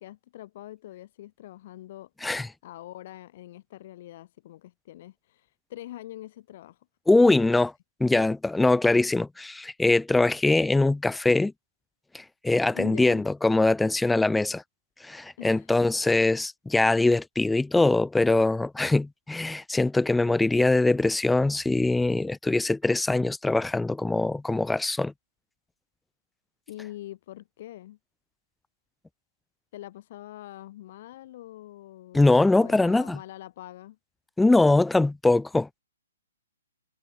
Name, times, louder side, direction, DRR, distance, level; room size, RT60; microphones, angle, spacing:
voice 1, 0.0-2.1 2.6-6.8 7.2-7.5 12.7-13.2 15.4-15.7 26.7-28.0 29.7-34.0, left 14 dB, 45° left, 4.7 m, -43 dB
voice 2, 7.1-7.7 8.0-11.5 12.1-14.6 15.0-25.1 32.1-33.2 34.4-35.7, left 2 dB, 5° left, 1.4 m, -22 dB
figure-of-eight pair, 125°, 0 cm